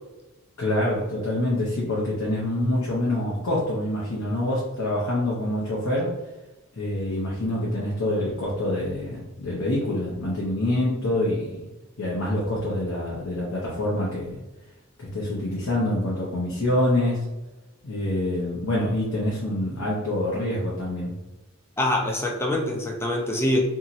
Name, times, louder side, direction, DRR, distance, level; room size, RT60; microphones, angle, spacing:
voice 1, 0.6-6.1 6.8-11.7 12.0-14.4 15.0-17.2 17.8-21.1, left 1 dB, 65° left, -5 dB, 0.7 m, -26 dB
voice 2, 21.8-23.6, left 1 dB, 10° left, 0 dB, 0.4 m, -24 dB
2.9 x 2.7 x 2.5 m, 1.0 s
head